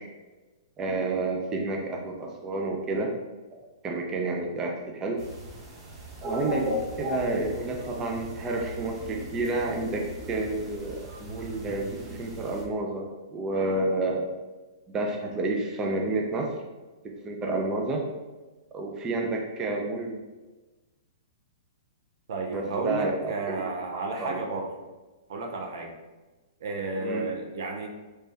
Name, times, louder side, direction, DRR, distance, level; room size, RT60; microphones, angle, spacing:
voice 1, 0.8-3.1 3.8-5.2 6.2-14.3 14.9-16.5 17.2-18.0 18.7-20.2 22.5-23.6 23.9-24.4 27.0-27.3, right 2 dB, 20° right, 1 dB, 0.5 m, -30 dB
sound 1, 5.2-12.6, equal, 35° right, 0.9 m, -37 dB
voice 2, 22.3-24.7 25.3-25.9 26.6-27.9, right 3 dB, 70° right, 2 dB, 0.6 m, -32 dB
3.3 x 3.2 x 2.8 m, 1.2 s
hypercardioid pair, 125°, 3 cm